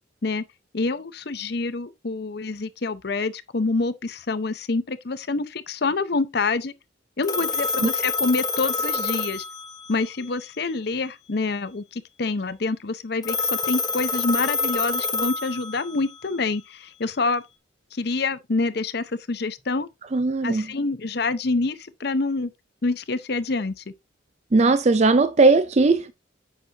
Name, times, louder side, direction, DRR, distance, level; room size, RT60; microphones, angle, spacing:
voice 1, 0.7-6.7 7.2-9.4 9.9-17.4 17.9-19.9 20.4-22.5 22.8-23.8, left 3 dB, 55° left, 0.7 m, -26 dB
Telephone, 7.2-10.1 13.2-16.1, left 4 dB, 20° left, 1.0 m, -27 dB
voice 2, 20.1-20.7 24.5-26.1, right 3 dB, 35° right, 0.4 m, -18 dB
7.9 x 6.1 x 2.8 m
head